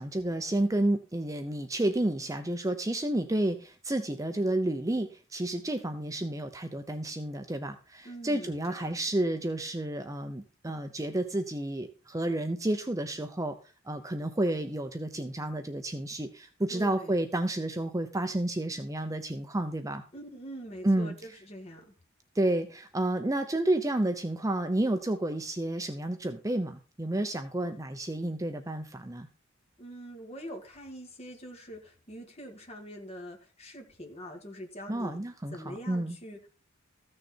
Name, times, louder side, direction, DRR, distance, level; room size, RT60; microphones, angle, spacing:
voice 1, 0.0-13.6 13.9-20.0 20.8-21.2 22.3-29.3 34.9-36.2, right 1 dB, 15° right, 7 dB, 0.7 m, -30 dB
voice 2, 8.0-9.0 16.7-17.2 20.1-21.9 29.8-35.2 35.5-36.5, equal, 35° left, 1 dB, 2.3 m, -44 dB
14.5 x 6.5 x 4.4 m, 0.34 s
head